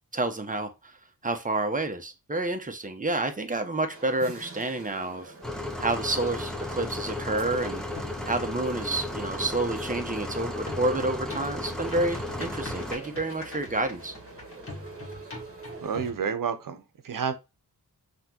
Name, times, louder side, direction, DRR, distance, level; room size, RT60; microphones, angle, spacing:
voice 1, 0.1-1.0 1.2-5.3 5.8-7.8 8.3-14.1, right 2 dB, 25° right, 0.9 m, -29 dB
sound 1, 3.9-16.1, right 3 dB, 40° right, 1.2 m, -46 dB
sound 2, 5.4-13.0, left 2 dB, ahead, 1.0 m, -34 dB
sound 3, 7.6-8.7 10.7-16.2, left 2 dB, 40° left, 1.9 m, -42 dB
voice 2, 15.8-17.3, right 6 dB, 65° right, 0.9 m, -30 dB
5.7 x 3.0 x 2.9 m
cardioid pair, 80°, 35 cm